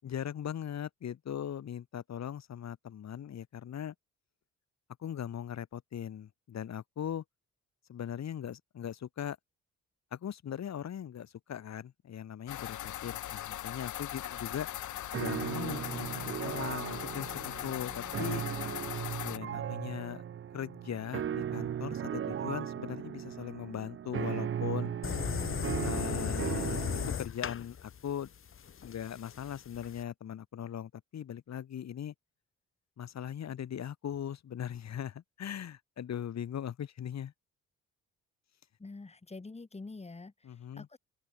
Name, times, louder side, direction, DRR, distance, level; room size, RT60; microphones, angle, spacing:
voice 1, 0.0-3.9 5.0-7.2 7.9-9.4 10.1-14.7 15.1-18.4 19.2-20.2 20.5-24.9 25.8-26.8 27.2-28.3 28.8-32.1 33.0-37.3 40.4-40.9, left 9 dB, 60° left, 7.0 m, -39 dB
sound 1, 12.5-19.4, left 12 dB, 75° left, 4.4 m, -39 dB
sound 2, 15.1-27.1, right 9 dB, 45° right, 0.8 m, -37 dB
sound 3, 25.0-30.0, left 8 dB, 45° left, 1.5 m, -36 dB
voice 2, 38.8-41.0, left 3 dB, 20° left, 5.0 m, -46 dB
open air
cardioid pair, 90°, 30 cm